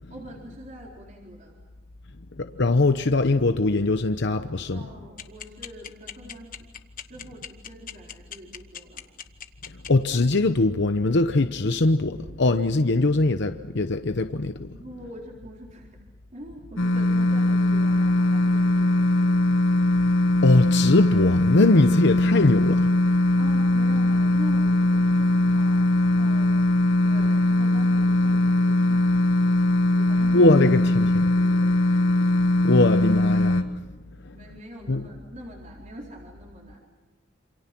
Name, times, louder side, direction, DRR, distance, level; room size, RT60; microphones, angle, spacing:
voice 1, 0.1-1.6 4.7-6.5 7.1-9.1 14.7-16.0 16.3-19.4 23.3-26.6 27.0-29.5 30.0-30.6 31.5-31.7 34.2-36.8, equal, 40° right, 4.3 m, -44 dB
voice 2, 2.4-4.9 9.7-14.8 20.4-22.9 30.3-31.3 32.4-33.8 34.2-34.4 34.9-35.1, left 2 dB, 60° left, 0.9 m, -22 dB
sound 1, 5.2-9.9, left 9 dB, 45° left, 1.3 m, -37 dB
sound 2, 16.8-33.6, left 1 dB, 75° left, 1.8 m, -20 dB
28.0 x 27.0 x 6.1 m
head